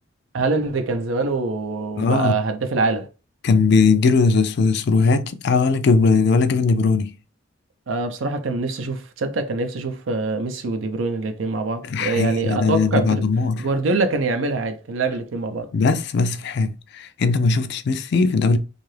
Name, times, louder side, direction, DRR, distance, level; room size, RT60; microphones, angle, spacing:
voice 1, 0.3-3.1 7.9-13.2 13.6-15.7, right 3 dB, 80° right, 0.5 m, -24 dB
voice 2, 2.0-2.3 3.4-7.1 11.8-13.7 15.7-18.6, left 4 dB, 60° left, 0.4 m, -19 dB
2.7 x 2.4 x 3.2 m
head